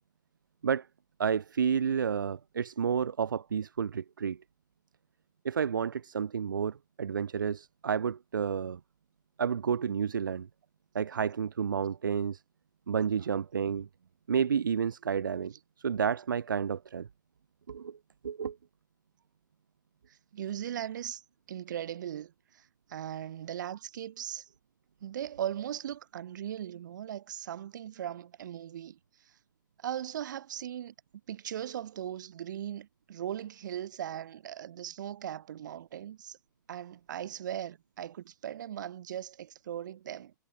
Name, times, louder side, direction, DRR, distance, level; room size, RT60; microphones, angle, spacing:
voice 1, 1.2-4.4 5.4-8.8 9.4-10.5 10.9-12.4 12.9-13.9 14.3-17.1 17.7-18.0 18.2-18.6, right 7 dB, 85° right, 1.4 m, -30 dB
voice 2, 20.1-21.2 21.5-24.5 25.0-29.0 29.8-30.9 31.3-36.4 36.7-40.3, right 10 dB, 70° right, 2.6 m, -38 dB
hypercardioid pair, 120°, 11 cm